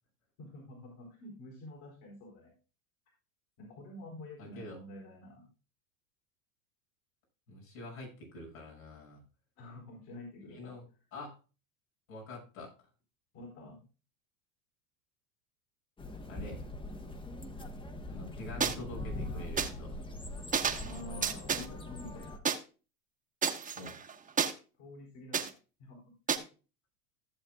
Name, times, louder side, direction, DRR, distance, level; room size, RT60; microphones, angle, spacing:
voice 1, 0.4-2.5 3.6-5.5 9.6-10.7 13.3-13.8 20.8-22.4 24.8-25.5 25.8-26.5, left 1 dB, 60° left, 0 dB, 3.8 m, -49 dB
voice 2, 4.4-4.8 7.5-9.2 10.5-10.8 11.1-11.4 12.1-12.7 16.2-16.6 18.1-20.0 23.8-24.0, left 2 dB, 85° left, -1 dB, 6.2 m, -45 dB
sound 1, 16.0-22.4, left 1 dB, 10° left, 0.9 m, -42 dB
sound 2, 18.6-18.7 19.6-19.7 20.5-20.9 21.2-21.7 22.5-22.6 23.4-24.5 25.3-25.5 26.3-26.4, right 6 dB, 20° right, 1.1 m, -30 dB
15.0 x 7.2 x 2.3 m, 0.32 s
supercardioid pair, 115°, 41 cm